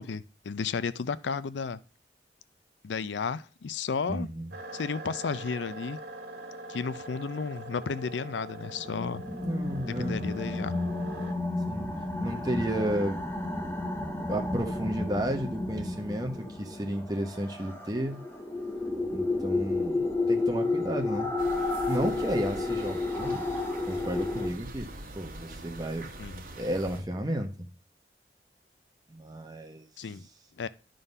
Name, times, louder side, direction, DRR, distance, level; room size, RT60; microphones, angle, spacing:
voice 1, 0.0-1.8 2.8-4.3 4.7-6.0 6.7-9.2 9.9-10.7 26.2-26.4 30.0-30.3 30.6-30.7, left 5 dB, 90° left, 0.5 m, -33 dB
voice 2, 4.1-4.5 9.3-10.2 11.7-11.9 12.2-13.2 14.3-18.2 19.1-21.3 21.9-23.4 23.9-24.9 25.1-26.1 26.5-27.7 29.1-29.8, right 1 dB, 20° right, 1.1 m, -32 dB
sound 1, 4.5-11.3, right 1 dB, 70° right, 1.7 m, -43 dB
sound 2, 8.7-24.5, left 2 dB, 10° left, 0.8 m, -31 dB
sound 3, 21.4-27.0, right 2 dB, 50° right, 1.4 m, -44 dB
11.5 x 3.9 x 5.4 m
head